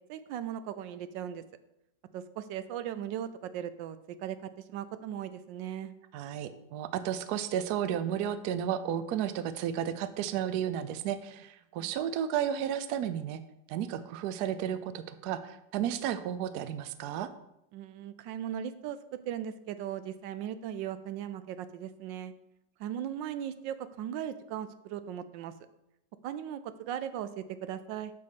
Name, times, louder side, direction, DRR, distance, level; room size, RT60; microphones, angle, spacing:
voice 1, 0.1-1.4 2.1-5.9 11.8-11.9 17.7-22.3 22.8-25.5 26.2-28.1, right 10 dB, 90° right, 12 dB, 1.3 m, -38 dB
voice 2, 6.1-13.4 13.7-17.3, right 9 dB, 70° right, 12 dB, 1.0 m, -33 dB
6.3 x 5.6 x 6.6 m, 0.84 s
omnidirectional pair, 1.9 m